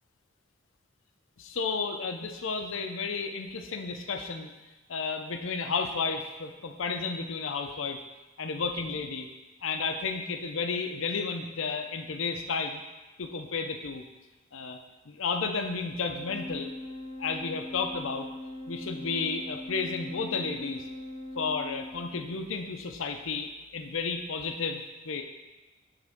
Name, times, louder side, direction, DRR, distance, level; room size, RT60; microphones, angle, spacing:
voice 1, 1.4-4.5 4.9-8.0 8.4-9.3 9.6-12.8 13.2-14.0 14.5-14.8 15.1-16.7 17.2-18.3 18.7-20.8 21.4-25.2, left 4 dB, 80° left, 5 dB, 0.7 m, -32 dB
Organ, 16.1-22.7, left 1 dB, 5° left, 1.0 m, -41 dB
10.5 x 3.6 x 3.6 m, 1.1 s
head